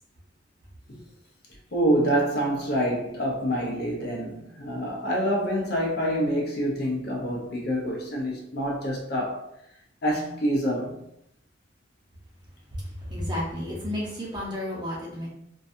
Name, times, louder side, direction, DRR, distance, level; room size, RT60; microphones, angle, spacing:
voice 1, 1.7-9.4 10.0-11.0, equal, 50° left, 0.5 m, -26 dB
voice 2, 12.7-15.3, left 1 dB, 20° right, 0.7 m, -32 dB
2.5 x 2.2 x 2.5 m
head